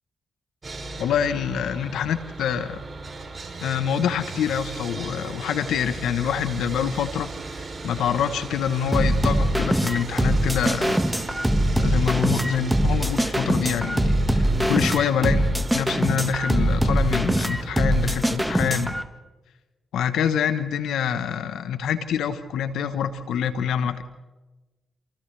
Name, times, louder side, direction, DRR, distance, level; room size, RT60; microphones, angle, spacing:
Sawing, 0.6-18.9, right 3 dB, 45° right, 3.2 m, -37 dB
voice 1, 1.0-2.8 3.6-7.3 7.6-11.0 11.8-19.0 19.9-24.0, left 8 dB, 80° left, 11 dB, 1.1 m, -26 dB
sound 1, 8.9-19.0, right 1 dB, 10° right, 1.7 m, -22 dB
28.5 x 27.5 x 3.4 m, 1.2 s
hypercardioid pair, 45°, 0 cm